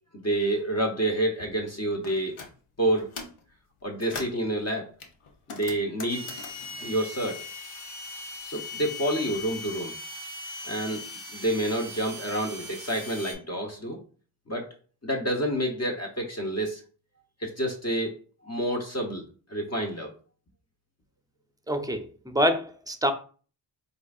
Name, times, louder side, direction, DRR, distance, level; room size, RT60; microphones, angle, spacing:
voice 1, 0.1-2.3 2.8-3.1 3.8-4.9 5.5-6.3 6.8-7.4 8.4-9.9 10.6-11.0 11.3-14.0 14.5-14.7 15.0-16.8 17.4-18.1 18.4-19.2 19.5-20.1, right 1 dB, 30° left, 0.9 m, -28 dB
sound 1, 2.0-2.5 2.9-3.4 3.8-4.5 5.0-7.9 8.2-9.3, left 4 dB, 85° left, 0.8 m, -42 dB
sound 2, 6.1-13.3, left 2 dB, 50° left, 1.7 m, -39 dB
voice 2, 21.7-23.1, equal, 10° right, 0.6 m, -26 dB
4.7 x 2.6 x 2.4 m
cardioid pair, 40°, 49 cm